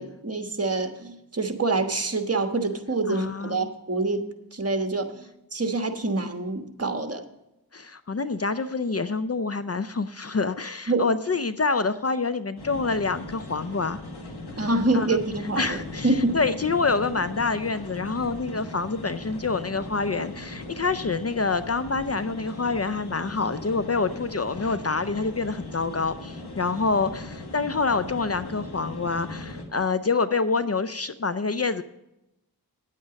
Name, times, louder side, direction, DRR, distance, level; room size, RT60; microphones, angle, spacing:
voice 1, 0.0-7.2 10.9-11.1 14.6-15.8 16.0-16.4, right 2 dB, 40° right, 6 dB, 1.3 m, -26 dB
voice 2, 3.1-3.7 7.7-14.0 14.9-15.1 15.6-31.8, left 4 dB, 40° left, 12 dB, 0.5 m, -27 dB
sound 1, 12.6-29.7, left 2 dB, 85° left, 1.7 m, -39 dB
9.8 x 8.8 x 5.1 m, 0.89 s
wide cardioid pair, 55°, 38 cm